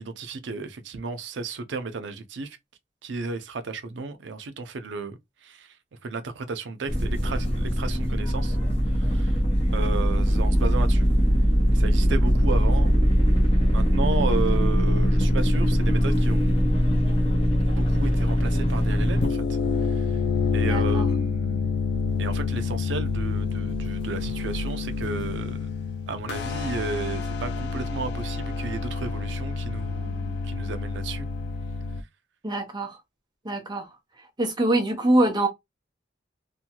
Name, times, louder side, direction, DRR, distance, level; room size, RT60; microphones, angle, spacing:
voice 1, 0.0-2.6 3.0-5.7 6.0-8.6 9.0-9.4 9.7-11.0 11.7-12.9 13.7-16.7 17.7-19.4 19.9-20.1 20.5-21.8 22.2-25.7 26.1-31.3, right 4 dB, 80° right, 0.5 m, -33 dB
sound 1, 6.9-19.3, equal, 30° left, 0.9 m, -21 dB
sound 2, 19.1-32.0, left 4 dB, 65° left, 0.3 m, -28 dB
voice 2, 20.6-21.1 32.4-33.0 33.4-33.9 34.4-35.5, right 1 dB, 25° right, 0.7 m, -24 dB
2.6 x 2.2 x 2.8 m
head